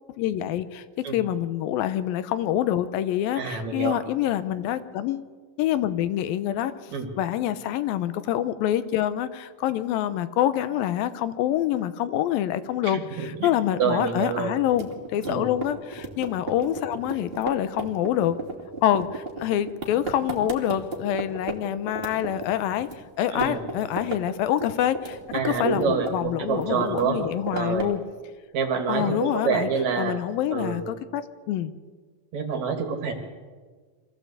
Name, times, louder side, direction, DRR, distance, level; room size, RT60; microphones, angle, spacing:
voice 1, 0.2-0.8 1.1-5.3 5.6-6.7 7.2-18.4 18.8-22.9 23.2-28.0 28.9-29.7 30.0-31.7, left 11 dB, 90° left, 13 dB, 2.7 m, -26 dB
voice 2, 3.3-4.0 6.9-7.1 12.8-13.5 13.8-14.5 15.3-15.5 23.3-23.6 25.3-27.2 27.5-27.9 28.5-30.1 30.5-30.8 32.3-33.1, right 6 dB, 55° right, 5 dB, 2.8 m, -27 dB
sound 1, 14.7-21.6 21.9-23.0 23.2-24.2 24.5-26.3 26.6-28.0, right 3 dB, 20° right, 1.9 m, -34 dB
24.0 x 15.5 x 8.1 m, 1.5 s
omnidirectional pair, 4.1 m